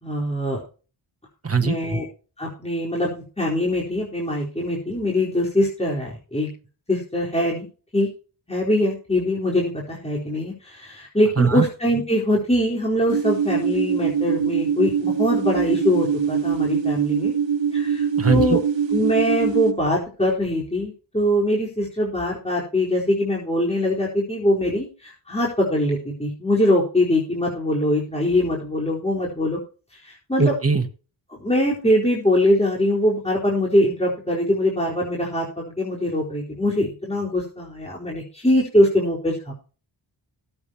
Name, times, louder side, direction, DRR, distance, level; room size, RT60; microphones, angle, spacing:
voice 1, 0.0-0.6 1.5-2.0 2.4-6.5 6.9-7.7 7.9-8.1 8.5-17.3 17.7-18.6 18.9-29.6 30.0-30.5 31.4-39.6, left 1 dB, 15° left, -5 dB, 4.4 m, -22 dB
voice 2, 1.4-1.8 11.4-11.6 18.2-18.6 30.4-30.9, right 4 dB, 30° right, 6 dB, 1.7 m, -20 dB
sound 1, 13.1-19.7, right 7 dB, 80° right, 1.4 m, -23 dB
19.0 x 8.8 x 3.0 m, 0.35 s
wide cardioid pair, 100°, 44 cm